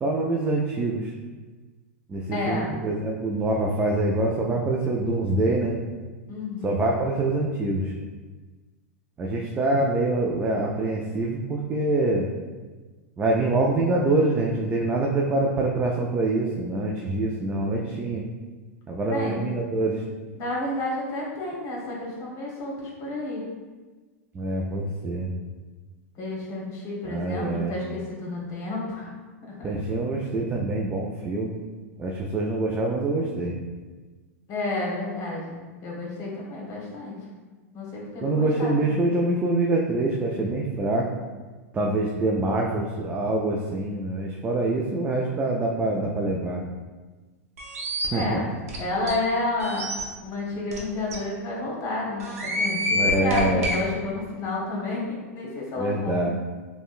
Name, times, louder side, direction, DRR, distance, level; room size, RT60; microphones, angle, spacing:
voice 1, 0.0-1.1 2.1-5.8 6.6-7.9 9.2-12.3 13.2-18.3 18.9-20.0 24.3-25.3 27.0-27.8 29.6-31.6 32.0-33.6 38.2-41.1 41.7-46.6 48.1-48.4 52.9-53.8 55.8-56.3, right 2 dB, 20° right, -2 dB, 0.3 m, -25 dB
voice 2, 2.3-2.7 6.3-6.8 19.1-19.4 20.4-23.4 26.1-29.1 29.5-29.7 34.5-37.2 37.7-39.0 48.1-48.5 48.8-49.9 50.2-56.2, left 2 dB, 40° left, -3 dB, 1.0 m, -30 dB
sound 1, 47.6-48.1 48.7-48.8 49.1-49.2 49.6-50.0 50.7-50.8 51.1-51.2 52.2-53.8, left 1 dB, 75° right, 0.7 m, -27 dB
3.5 x 2.2 x 2.4 m, 1.3 s
hypercardioid pair, 110°, 8 cm